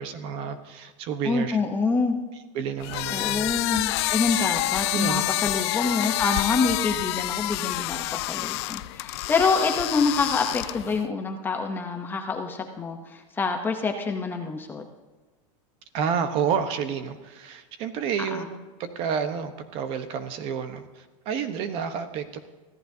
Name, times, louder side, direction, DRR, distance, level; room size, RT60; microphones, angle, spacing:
voice 1, 0.0-1.6 2.5-3.5 4.9-5.2 15.9-22.4, right 7 dB, 35° right, 9 dB, 1.0 m, -30 dB
voice 2, 1.3-2.2 3.1-14.8 18.3-18.5, left 4 dB, 10° left, 4 dB, 0.7 m, -26 dB
sound 1, 2.8-11.0, left 17 dB, 50° left, 0.4 m, -28 dB
24.5 x 15.0 x 2.8 m, 1.2 s
supercardioid pair, 170°, 17 cm